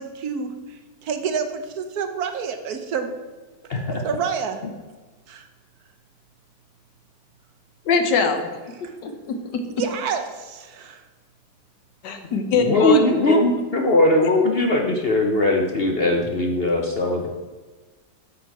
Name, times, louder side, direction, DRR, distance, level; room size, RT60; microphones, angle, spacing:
voice 1, 0.0-3.2 4.0-4.6 5.3-5.5 8.8-8.9 9.8-11.0, right 6 dB, 65° right, 7 dB, 1.1 m, -28 dB
voice 2, 3.7-4.0 12.6-17.3, left 2 dB, 55° left, 1 dB, 0.7 m, -20 dB
voice 3, 7.8-8.5 8.8-9.9 12.0-13.0, left 4 dB, 80° left, 6 dB, 1.6 m, -23 dB
8.6 x 6.2 x 4.6 m, 1.3 s
omnidirectional pair, 1.8 m